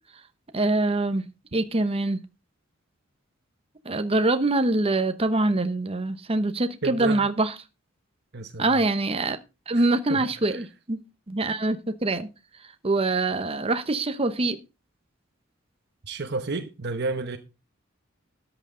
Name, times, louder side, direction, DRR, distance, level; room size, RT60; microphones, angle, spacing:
voice 1, 0.5-1.3 1.5-2.2 3.8-7.5 8.6-9.4 9.7-11.0 11.3-11.8 12.0-12.3 12.8-14.6, right 2 dB, 30° right, 0.9 m, -24 dB
voice 2, 6.8-7.2 8.3-8.8 9.7-10.6 16.0-17.4, right 3 dB, 55° right, 1.0 m, -32 dB
13.0 x 9.0 x 3.8 m
head